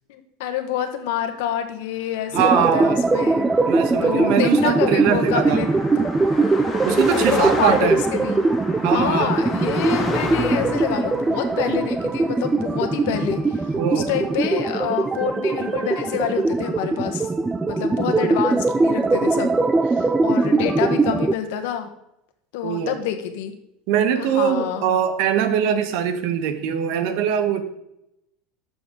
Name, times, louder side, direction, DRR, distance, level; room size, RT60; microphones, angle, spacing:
voice 1, 0.1-3.5 3.8-5.7 6.0-6.1 7.1-8.4 8.9-17.3 17.6-19.6 19.8-21.9 22.5-23.5 24.2-24.8, left 10 dB, 75° left, 7 dB, 1.3 m, -27 dB
sound 1, 2.3-21.3, right 3 dB, 10° right, 0.4 m, -21 dB
voice 2, 2.3-3.0 3.7-5.6 6.8-8.0 8.8-9.4 13.8-14.2 22.6-23.0 23.9-27.6, right 8 dB, 65° right, 9 dB, 1.2 m, -22 dB
Car passing by, 2.5-14.0, left 3 dB, 15° left, 1.7 m, -33 dB
12.5 x 6.9 x 3.9 m, 0.82 s
supercardioid pair, 150°, 0 cm